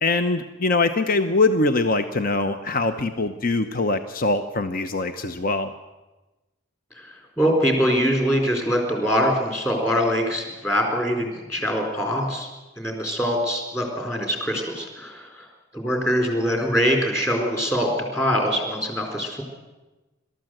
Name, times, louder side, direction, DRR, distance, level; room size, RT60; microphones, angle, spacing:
voice 1, 0.0-5.7, left 3 dB, 45° left, 8 dB, 0.8 m, -23 dB
voice 2, 7.4-12.5 12.8-15.5 15.7-19.4, equal, 15° left, 2 dB, 4.3 m, -23 dB
27.0 x 13.5 x 7.9 m, 1.1 s
head